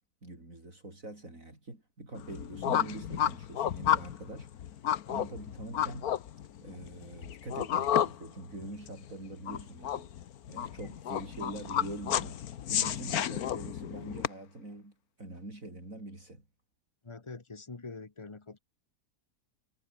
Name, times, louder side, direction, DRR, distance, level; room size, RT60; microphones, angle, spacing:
voice 1, 0.2-4.5 5.1-6.1 6.6-10.1 10.5-12.4 12.7-16.4, right 2 dB, 55° right, 6.7 m, -44 dB
sound 1, 2.2-14.3, left 10 dB, 65° left, 1.4 m, -32 dB
voice 2, 17.0-18.6, left 3 dB, 20° left, 1.2 m, -44 dB
omnidirectional pair, 1.7 m